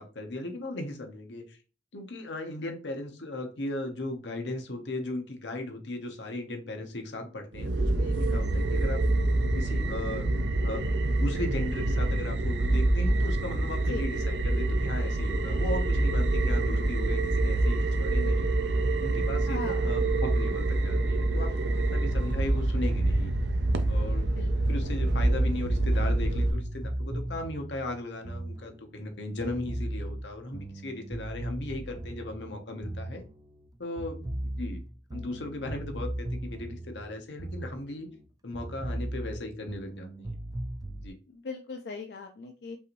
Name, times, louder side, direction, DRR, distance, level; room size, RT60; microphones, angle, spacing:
voice 1, 0.0-1.6 1.9-9.0 9.5-10.2 10.6-18.5 19.0-23.3 23.9-24.2 24.7-33.2 33.8-34.8 35.1-38.1 38.4-40.4 41.0-41.1, left 1 dB, 90° left, 4 dB, 0.9 m, -37 dB
sound 1, 7.5-26.5, right 2 dB, 80° right, 0.5 m, -26 dB
voice 2, 19.5-19.9 24.4-24.5 41.3-42.8, left 3 dB, 65° left, 4 dB, 0.4 m, -39 dB
sound 2, 22.8-29.1 29.4-33.7 34.0-38.3 38.5-41.1, right 1 dB, 20° right, 0.3 m, -38 dB
5.4 x 2.6 x 3.0 m, 0.34 s
head